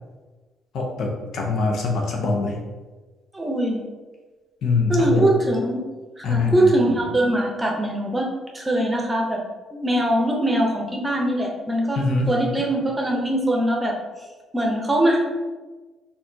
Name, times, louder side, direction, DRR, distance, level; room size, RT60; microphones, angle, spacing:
voice 1, 0.7-2.6 4.6-5.3 6.2-6.7 12.0-12.3, left 3 dB, 65° left, 0 dB, 0.7 m, -23 dB
voice 2, 3.3-3.8 4.9-5.8 6.2-8.3 8.5-9.4 9.7-14.0 14.5-15.2, right 1 dB, 20° right, 0 dB, 0.9 m, -22 dB
4.0 x 2.6 x 2.8 m, 1.3 s
hypercardioid pair, 55°, 0 cm